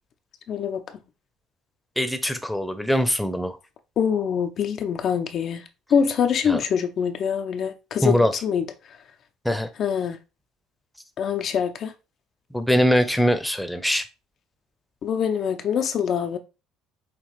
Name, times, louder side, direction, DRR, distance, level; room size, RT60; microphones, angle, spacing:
voice 1, 0.5-1.0 4.0-5.6 5.9-8.6 9.8-10.2 11.2-11.9 15.0-16.4, left 7 dB, 55° left, 0.5 m, -24 dB
voice 2, 2.0-3.6 6.5-6.6 8.0-8.3 9.4-9.7 12.5-14.1, equal, 5° left, 0.7 m, -22 dB
5.8 x 2.4 x 3.2 m
hypercardioid pair, 60°, 0 cm